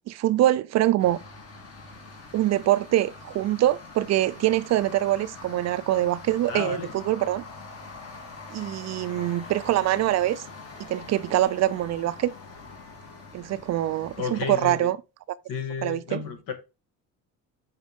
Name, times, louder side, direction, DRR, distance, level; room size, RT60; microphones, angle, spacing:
voice 1, 0.1-1.2 2.3-7.4 8.5-10.4 10.8-12.3 13.3-15.0 15.8-16.2, right 14 dB, 50° right, 0.4 m, -24 dB
sound 1, 1.0-14.8, left 3 dB, 40° left, 2.0 m, -44 dB
voice 2, 6.5-6.9 14.2-14.9 15.5-16.5, left 6 dB, 70° left, 1.6 m, -32 dB
6.3 x 4.6 x 3.5 m
cardioid pair, 105°, 35 cm